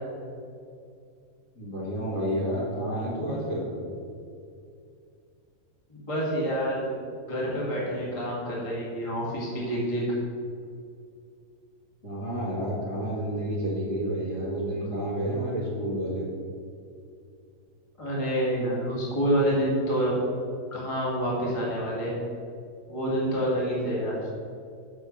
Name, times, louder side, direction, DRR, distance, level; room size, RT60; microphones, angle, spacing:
voice 1, 1.6-3.8 12.0-16.3, right 1 dB, 35° left, -7 dB, 1.8 m, -30 dB
voice 2, 5.9-6.9 7.3-10.0 18.0-20.2 20.7-22.2 22.9-24.1, equal, 15° left, -6 dB, 1.4 m, -27 dB
6.6 x 6.6 x 6.6 m, 2.4 s
omnidirectional pair, 4.0 m